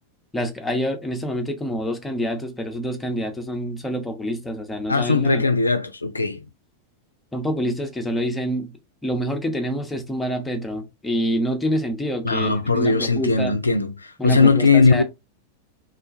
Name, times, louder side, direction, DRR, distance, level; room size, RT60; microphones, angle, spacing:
voice 1, 0.3-5.4 7.3-8.7 9.0-13.6 14.2-15.0, equal, 5° left, 0.6 m, -27 dB
voice 2, 4.9-6.4 12.2-15.0, left 4 dB, 80° left, 0.3 m, -19 dB
3.0 x 2.3 x 2.5 m
figure-of-eight pair, 90°, 0 cm